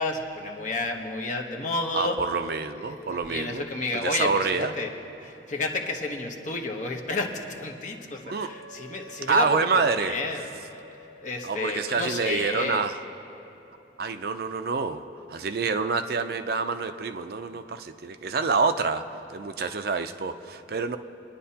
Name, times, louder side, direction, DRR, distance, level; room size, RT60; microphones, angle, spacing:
voice 1, 0.0-2.2 2.9-4.9 5.2-9.5 9.7-10.5 11.2-12.8, left 3 dB, 45° left, 2 dB, 1.0 m, -31 dB
voice 2, 1.9-3.6 3.9-4.7 8.2-8.5 9.3-10.2 11.4-13.0 14.0-15.0 15.3-19.0 19.3-21.0, right 4 dB, 55° right, 9 dB, 0.4 m, -27 dB
Wind instrument woodwind instrument, 8.3-12.8, right 3 dB, 90° left, 1.6 m, -49 dB
25.0 x 10.0 x 2.8 m, 3.0 s
head